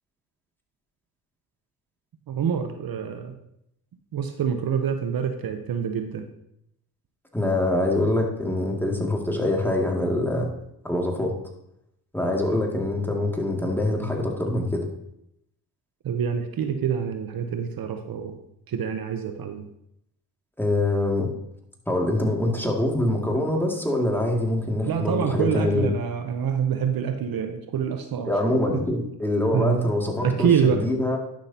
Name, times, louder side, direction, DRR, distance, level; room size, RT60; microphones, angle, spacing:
voice 1, 2.3-3.3 4.1-6.3 16.0-18.4 18.7-19.7 24.9-28.3 28.7-28.8 29.5-29.8 30.2-30.9, right 7 dB, 60° right, 7 dB, 0.9 m, -26 dB
voice 2, 7.3-10.5 10.8-11.3 12.1-14.8 20.6-21.3 21.9-25.9 28.3-31.2, left 1 dB, 5° left, 0 dB, 2.3 m, -24 dB
11.5 x 6.3 x 2.9 m, 0.78 s
supercardioid pair, 60°, 41 cm